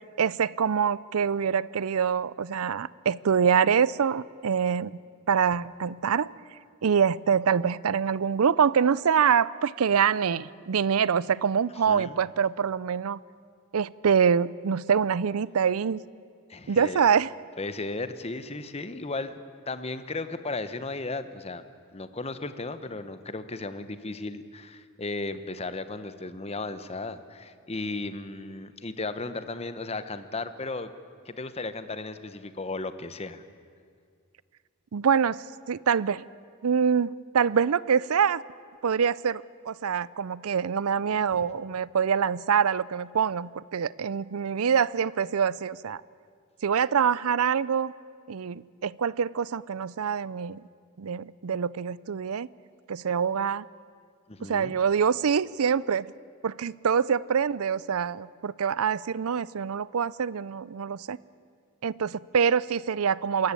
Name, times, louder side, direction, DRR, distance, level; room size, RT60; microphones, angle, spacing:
voice 1, 0.2-5.0 5.3-6.3 6.8-13.2 13.7-16.0 16.7-17.3 34.9-36.2 36.6-38.4 38.8-46.0 46.6-47.9 48.3-50.6 51.0-52.5 52.9-53.6 54.5-56.1 56.4-61.2 61.8-63.5, right 7 dB, 85° right, 21 dB, 0.5 m, -25 dB
voice 2, 11.9-12.2 16.5-17.0 17.6-19.4 19.7-21.7 21.9-30.9 31.2-33.4 41.3-41.5 54.3-54.8, left 3 dB, 30° left, 11 dB, 1.0 m, -35 dB
25.0 x 14.5 x 9.8 m, 2.2 s
head